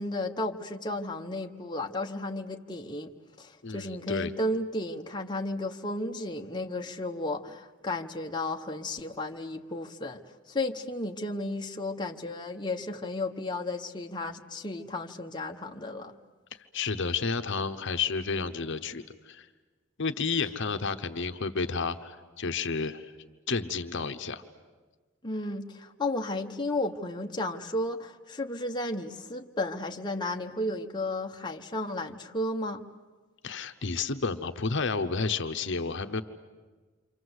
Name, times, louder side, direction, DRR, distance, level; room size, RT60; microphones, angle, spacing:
voice 1, 0.0-3.1 3.4-10.2 10.5-16.2 25.2-32.8, left 2 dB, 20° left, 1.0 m, -33 dB
voice 2, 3.6-4.3 16.7-19.5 20.0-23.1 23.5-24.4 33.4-36.2, left 4 dB, 60° left, 1.0 m, -31 dB
28.5 x 25.0 x 8.0 m
head